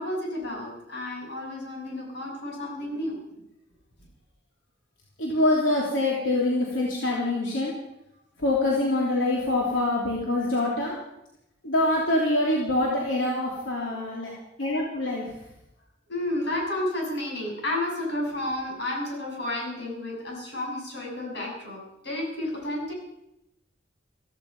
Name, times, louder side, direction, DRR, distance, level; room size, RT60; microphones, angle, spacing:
voice 1, 0.0-3.2 6.1-6.2 6.7-6.8 16.1-22.9, left 1 dB, 60° left, -1 dB, 7.1 m, -31 dB
voice 2, 5.2-7.7 8.4-10.9 11.6-14.3 14.6-15.3, left 1 dB, 85° left, -3 dB, 3.2 m, -25 dB
16.0 x 15.5 x 5.5 m, 0.84 s
head